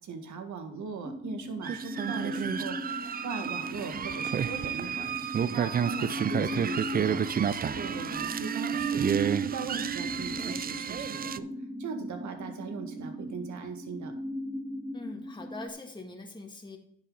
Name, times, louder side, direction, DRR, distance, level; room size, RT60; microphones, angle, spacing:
voice 1, 0.0-5.1 5.5-11.5 11.8-14.1, right 4 dB, 70° right, 6 dB, 2.0 m, -39 dB
sound 1, 1.0-15.7, right 2 dB, 10° right, 0.9 m, -37 dB
sound 2, 1.6-11.4, right 7 dB, 30° right, 0.4 m, -31 dB
voice 2, 14.9-16.8, left 3 dB, 15° left, 2 dB, 1.7 m, -42 dB
10.5 x 7.3 x 4.0 m, 0.71 s
cardioid pair, 90°, 30 cm